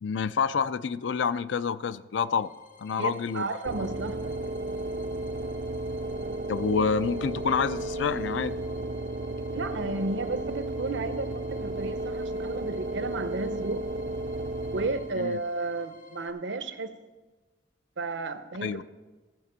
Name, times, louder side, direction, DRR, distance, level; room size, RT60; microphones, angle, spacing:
voice 1, 0.0-2.5 2.8-3.5 6.5-8.6 15.2-15.4 18.6-18.8, left 6 dB, 80° left, 0.4 m, -28 dB
sound 1, 2.1-16.3, left 5 dB, 45° left, 0.8 m, -52 dB
voice 2, 3.0-4.4 9.5-13.8 14.7-16.9 18.0-18.8, right 3 dB, 80° right, 0.8 m, -33 dB
sound 2, 3.7-15.4, right 2 dB, 50° right, 0.4 m, -33 dB
15.0 x 5.1 x 6.7 m
head